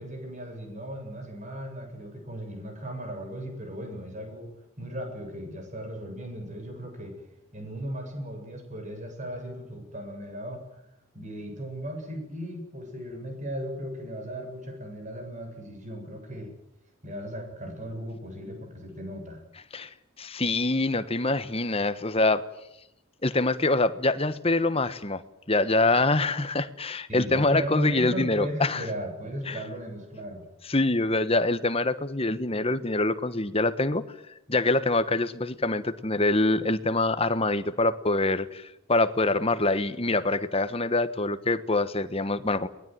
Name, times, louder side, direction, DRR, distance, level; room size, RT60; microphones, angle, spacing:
voice 1, 0.0-7.1 7.5-10.6 11.1-16.5 17.0-19.4 27.1-30.4, equal, 35° right, 4 dB, 7.7 m, -36 dB
voice 2, 19.7-22.4 23.2-25.2 25.5-28.8 29.5-29.6 30.7-34.0 34.5-42.7, left 2 dB, 25° left, 12 dB, 1.2 m, -25 dB
22.5 x 20.5 x 9.4 m, 0.83 s
head